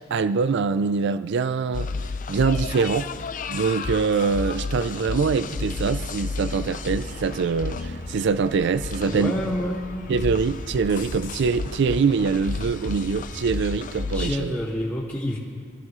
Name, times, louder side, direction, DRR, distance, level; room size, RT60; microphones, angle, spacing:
voice 1, 0.0-1.9 2.3-3.1 3.5-9.3 10.1-14.5, right 5 dB, 60° right, 13 dB, 0.4 m, -24 dB
sound 1, 1.7-14.3, left 4 dB, 40° left, 0.4 m, -32 dB
Bird vocalization bird call bird song, 5.3-14.3, right 1 dB, 35° right, 1.2 m, -40 dB
voice 2, 9.1-9.9 14.1-15.4, left 1 dB, 10° left, -10 dB, 2.1 m, -27 dB
24.0 x 15.0 x 3.1 m, 2.2 s
head